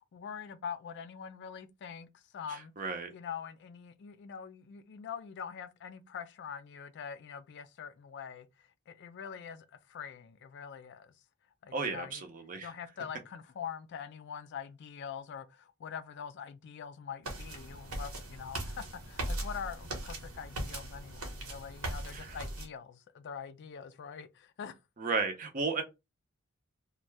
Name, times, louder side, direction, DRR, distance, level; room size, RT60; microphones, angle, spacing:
voice 1, 0.1-2.7 3.1-8.5 8.9-11.1 11.6-12.2 12.6-24.7, left 7 dB, 55° left, 0.3 m, -44 dB
voice 2, 2.5-3.1 11.7-12.7 22.1-22.4 25.0-25.8, right 4 dB, 40° right, 0.6 m, -34 dB
sound 1, 17.2-22.7, right 1 dB, 80° right, 1.0 m, -39 dB
2.6 x 2.2 x 3.2 m
head